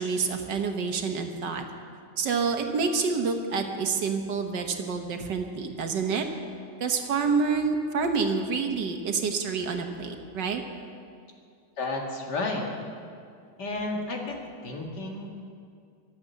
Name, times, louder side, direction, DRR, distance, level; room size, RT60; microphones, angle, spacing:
voice 1, 0.0-1.7 2.2-6.3 6.8-10.6, right 5 dB, 85° right, 5 dB, 1.9 m, -28 dB
voice 2, 11.8-12.7 13.6-15.3, left 2 dB, 70° left, 0 dB, 2.6 m, -32 dB
23.5 x 8.0 x 7.0 m, 2.3 s
omnidirectional pair, 1.9 m